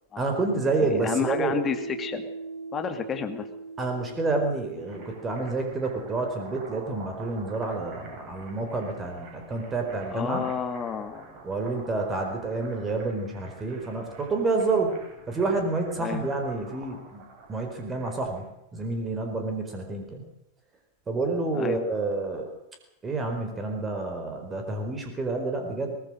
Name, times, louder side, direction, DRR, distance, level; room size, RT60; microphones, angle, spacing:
voice 1, 0.2-1.6 3.8-10.4 11.4-15.0 15.3-17.2 17.5-18.4 18.7-20.2 21.1-22.5 23.0-26.0, right 3 dB, 20° right, 4 dB, 4.6 m, -29 dB
voice 2, 0.8-2.3 2.7-3.5 10.1-11.4 16.0-16.3 21.5-21.8, left 7 dB, 25° left, 7 dB, 2.6 m, -31 dB
Piano, 1.0-8.2, right 4 dB, 75° right, 1.6 m, -40 dB
sound 1, 4.7-18.4, right 3 dB, 35° right, 7.8 m, -48 dB
23.0 x 19.5 x 6.5 m, 0.85 s
figure-of-eight pair, 90°, 0 cm